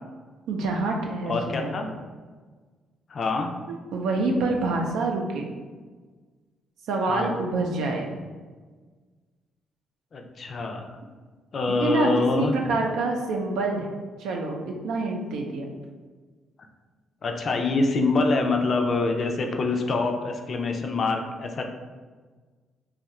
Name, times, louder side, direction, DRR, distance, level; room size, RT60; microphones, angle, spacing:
voice 1, 0.5-1.7 3.7-5.5 6.9-8.1 11.7-13.9 14.2-15.7, right 3 dB, 85° right, 1 dB, 0.5 m, -26 dB
voice 2, 1.2-1.9 3.1-3.5 7.1-7.3 10.1-10.9 11.5-12.5 17.2-21.7, left 3 dB, 50° left, 3 dB, 0.4 m, -25 dB
2.7 x 2.4 x 4.2 m, 1.4 s
cardioid pair, 90°, 0 cm